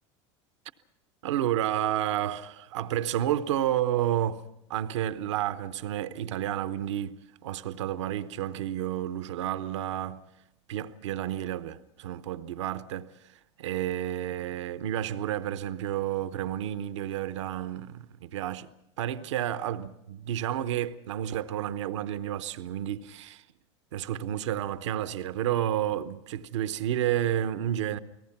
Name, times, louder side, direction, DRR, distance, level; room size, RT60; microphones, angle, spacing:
voice 1, 1.2-10.2 10.7-13.1 13.6-18.7 19.0-23.4 23.9-28.0, right 11 dB, 80° right, 0.9 m, -31 dB
29.5 x 18.5 x 5.9 m
hypercardioid pair, 85°, 15 cm